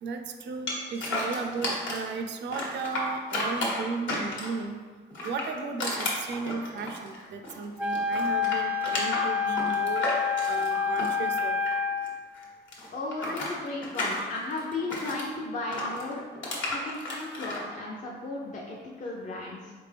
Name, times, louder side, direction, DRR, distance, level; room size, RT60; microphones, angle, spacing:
voice 1, 0.0-4.8 5.2-10.0 10.5-11.6, right 4 dB, 65° right, 6 dB, 0.5 m, -35 dB
sound 1, 0.7-2.1 2.5-4.7 5.1-7.6 7.9-12.1 12.3-15.3 15.7-17.6, left 2 dB, 75° left, 1.2 m, -33 dB
Wind instrument woodwind instrument, 7.8-12.2, left 5 dB, 5° right, 0.4 m, -28 dB
voice 2, 12.9-16.2 16.6-19.7, left 2 dB, 40° left, -3 dB, 0.6 m, -35 dB
4.4 x 3.4 x 3.3 m, 1.5 s
cardioid pair, 90°, 20 cm